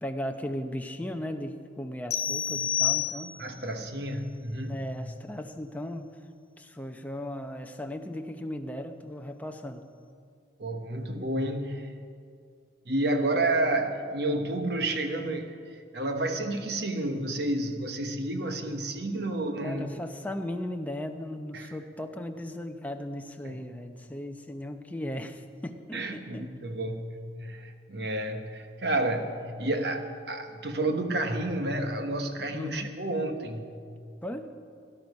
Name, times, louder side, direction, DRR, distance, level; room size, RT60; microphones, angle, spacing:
voice 1, 0.0-3.3 4.7-6.2 6.6-9.9 19.6-26.4 32.5-33.0 34.2-34.5, left 1 dB, 10° left, 5 dB, 0.7 m, -37 dB
sound 1, 2.1-3.6, left 10 dB, 55° left, 0.9 m, -29 dB
voice 2, 3.4-4.9 10.6-12.0 12.8-19.9 21.5-21.7 23.4-23.6 25.9-33.7, right 2 dB, 60° right, 6 dB, 1.2 m, -30 dB
18.0 x 11.5 x 5.3 m, 2.3 s
head